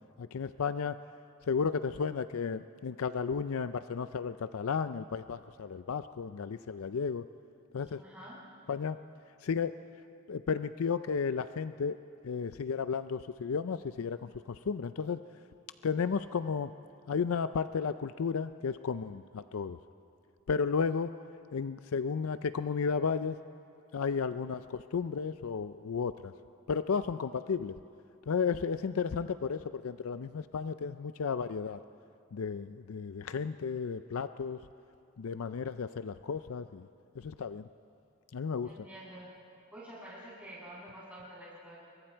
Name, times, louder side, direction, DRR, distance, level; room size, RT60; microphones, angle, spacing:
voice 1, 0.2-1.0 1.5-7.3 7.7-8.0 8.7-9.0 9.4-9.7 10.3-12.0 12.2-15.2 15.8-16.7 17.1-19.8 20.5-21.1 21.5-23.4 23.9-26.3 26.7-27.8 28.3-31.8 32.3-34.6 35.2-36.9 37.2-37.7 38.3-38.7, left 5 dB, 90° left, 12 dB, 0.5 m, -33 dB
voice 2, 8.0-8.4 38.6-39.4 39.7-41.8, right 1 dB, 5° right, -8 dB, 7.3 m, -48 dB
29.0 x 22.5 x 4.5 m, 2.5 s
head